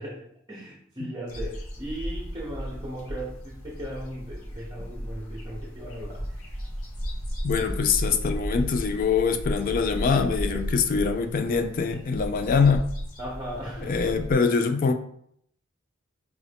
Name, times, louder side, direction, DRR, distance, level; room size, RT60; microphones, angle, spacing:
voice 1, 0.0-6.3 13.2-14.0, equal, 20° right, -3 dB, 0.7 m, -37 dB
sound 1, 1.3-14.3, equal, 80° left, 1.1 m, -34 dB
voice 2, 7.4-12.9 13.8-14.9, left 5 dB, 40° left, 8 dB, 0.3 m, -24 dB
4.7 x 2.6 x 3.3 m, 0.68 s
head